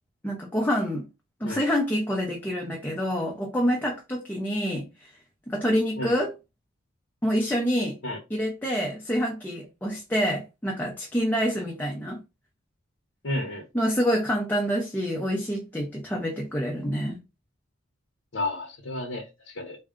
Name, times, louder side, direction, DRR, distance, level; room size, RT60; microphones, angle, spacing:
voice 1, 0.2-1.1 1.4-5.1 5.5-6.3 7.2-8.0 8.3-12.2 13.7-17.2, equal, 10° left, 0.5 m, -27 dB
voice 2, 13.2-13.7 18.3-19.8, left 1 dB, 65° left, 0.8 m, -32 dB
3.6 x 2.2 x 3.6 m
head